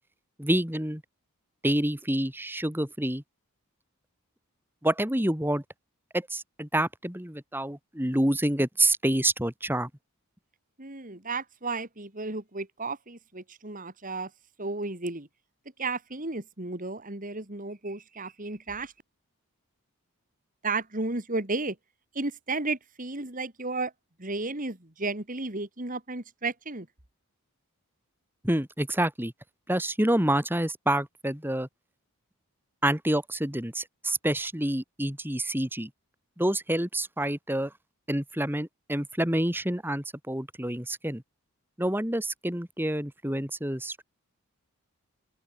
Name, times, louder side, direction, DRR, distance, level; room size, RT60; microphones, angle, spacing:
voice 1, 0.4-1.0 1.6-3.2 4.8-5.6 6.1-9.9 28.4-29.3 29.7-31.7 32.8-35.9 36.4-37.7 38.1-41.2 41.8-44.0, right 1 dB, 10° right, 2.9 m, -28 dB
voice 2, 10.8-14.3 14.6-15.3 15.8-18.9 20.6-21.8 22.1-23.9 24.2-26.9, right 3 dB, 35° right, 2.7 m, -33 dB
open air
head